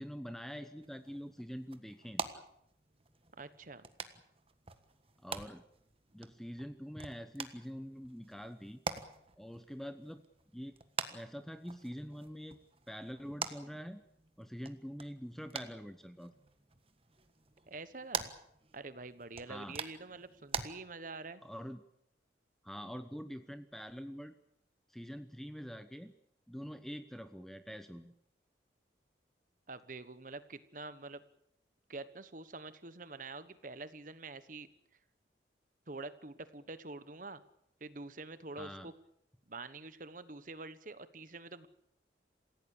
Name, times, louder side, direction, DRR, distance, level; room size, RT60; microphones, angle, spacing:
voice 1, 0.0-2.4 5.2-5.6 6.1-8.8 9.4-10.2 10.5-10.8 11.1-12.6 12.9-14.0 14.4-16.3 19.5-19.8 21.4-21.8 22.6-24.3 24.9-26.1 26.5-28.1 38.5-38.9, equal, ahead, 9 dB, 0.9 m, -45 dB
sound 1, 0.8-20.7, right 5 dB, 30° right, 1.5 m, -46 dB
voice 2, 3.4-3.9 17.7-18.3 18.7-21.4 29.7-31.2 31.9-34.7 35.9-37.4 37.8-38.9 39.5-41.7, right 3 dB, 50° right, 13 dB, 1.2 m, -46 dB
27.5 x 16.5 x 8.5 m, 0.77 s
head